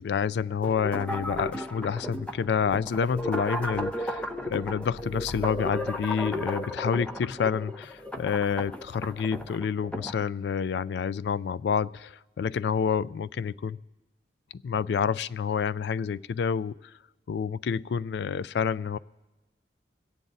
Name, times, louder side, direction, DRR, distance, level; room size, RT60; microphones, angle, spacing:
voice 1, 0.0-13.8 14.5-16.7 17.3-19.0, left 6 dB, 70° left, 18 dB, 0.3 m, -28 dB
sound 1, 0.6-10.2, left 1 dB, 5° left, 0.5 m, -34 dB
22.5 x 8.8 x 4.0 m, 1.1 s
head